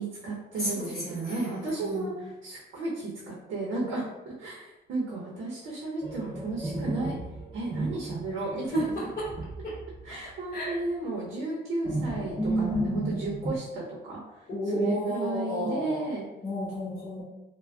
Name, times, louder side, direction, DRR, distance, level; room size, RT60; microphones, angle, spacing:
voice 1, 0.0-7.1 7.5-8.9 10.0-16.3, right 2 dB, 80° right, -4 dB, 0.8 m, -34 dB
voice 2, 0.6-1.5 1.8-2.1 8.7-9.2 10.5-10.7 12.4-13.2 14.5-16.0 16.4-17.2, equal, 40° left, -10 dB, 1.1 m, -31 dB
sound 1, 6.0-10.3 10.6-10.8 11.8-13.6, right 2 dB, 25° right, 0.5 m, -35 dB
3.3 x 2.2 x 2.3 m, 0.98 s
cardioid pair, 90°, 20 cm